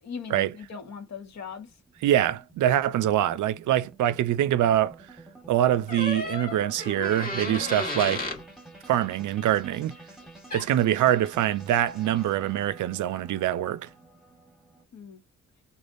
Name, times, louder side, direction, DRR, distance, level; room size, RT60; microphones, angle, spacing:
voice 1, 0.0-1.8 14.9-15.2, left 6 dB, 60° left, 1.3 m, -39 dB
sound 1, 0.6-14.8, right 2 dB, ahead, 1.3 m, -49 dB
voice 2, 2.0-4.9 5.5-8.3 8.9-9.9 10.5-13.9, right 12 dB, 75° right, 0.5 m, -24 dB
sound 2, 5.9-8.4 10.5-10.7, left 2 dB, 30° left, 1.3 m, -33 dB
3.4 x 2.3 x 2.5 m
cardioid pair, 90°, 31 cm